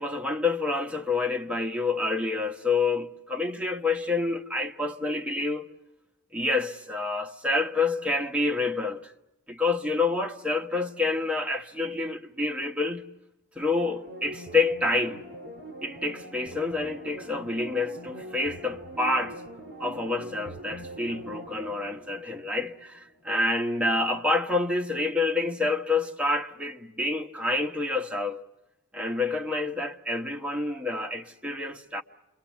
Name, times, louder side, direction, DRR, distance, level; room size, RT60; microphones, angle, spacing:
voice 1, 0.0-5.7 6.3-9.1 9.5-13.0 13.6-15.2 15.8-19.4 19.8-28.4 28.9-32.0, left 3 dB, 5° right, 1.2 m, -28 dB
sound 1, 13.7-23.1 23.4-23.5, right 1 dB, 45° right, 5.2 m, -43 dB
28.5 x 23.5 x 7.2 m
head